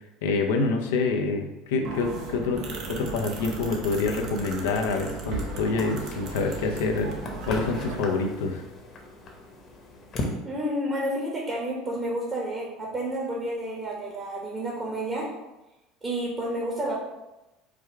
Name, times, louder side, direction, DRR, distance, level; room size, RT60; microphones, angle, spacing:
voice 1, 0.2-2.6 2.9-7.2 7.5-8.6, left 4 dB, 90° left, 4 dB, 0.6 m, -26 dB
sound 1, 1.8-7.9, right 3 dB, 60° right, 0.9 m, -36 dB
sound 2, 5.1-10.4, left 2 dB, 40° left, 0.9 m, -38 dB
voice 2, 10.4-15.3 16.0-16.9, right 1 dB, 25° right, -4 dB, 1.1 m, -30 dB
4.8 x 2.3 x 4.5 m, 0.98 s
supercardioid pair, 115°, 0 cm